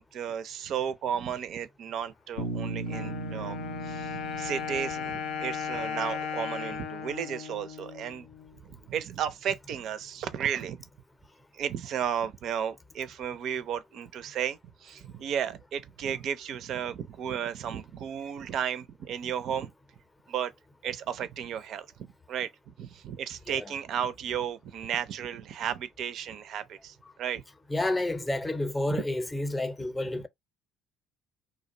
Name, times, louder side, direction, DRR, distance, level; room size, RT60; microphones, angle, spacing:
voice 1, 0.0-3.6 3.8-8.3 8.6-10.8 11.5-19.7 20.3-20.5 20.8-27.4 28.9-29.0 30.1-30.3, right 8 dB, 60° right, 0.4 m, -34 dB
Bass guitar, 2.4-6.4, right 2 dB, 90° left, 0.8 m, -38 dB
Wind instrument woodwind instrument, 2.9-8.6, left 7 dB, 70° left, 0.4 m, -36 dB
voice 2, 27.7-30.3, left 1 dB, 20° left, 0.6 m, -30 dB
2.5 x 2.1 x 2.5 m
hypercardioid pair, 60°, 0 cm